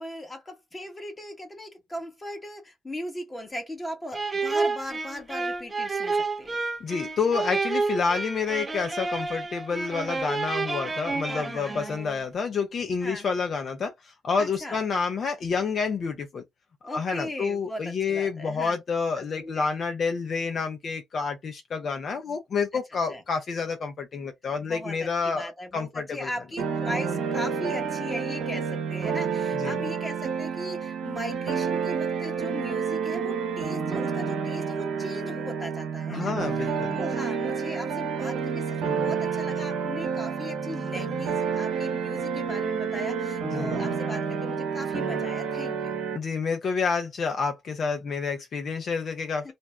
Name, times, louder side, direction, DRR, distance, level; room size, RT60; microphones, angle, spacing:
voice 1, 0.0-6.6 11.3-11.9 13.0-13.3 14.4-14.8 16.8-18.8 19.2-19.7 23.1-23.2 24.6-46.0 49.4-49.5, left 1 dB, 20° left, 1.0 m, -38 dB
sound 1, 4.1-12.2, right 3 dB, 25° right, 0.6 m, -30 dB
voice 2, 6.8-16.4 16.9-26.3 29.6-29.8 36.1-37.0 43.4-43.8 46.1-49.5, left 5 dB, 50° left, 0.6 m, -29 dB
sound 2, 26.6-46.2, right 6 dB, 85° right, 0.9 m, -29 dB
2.6 x 2.2 x 3.1 m
cardioid pair, 90°, 0 cm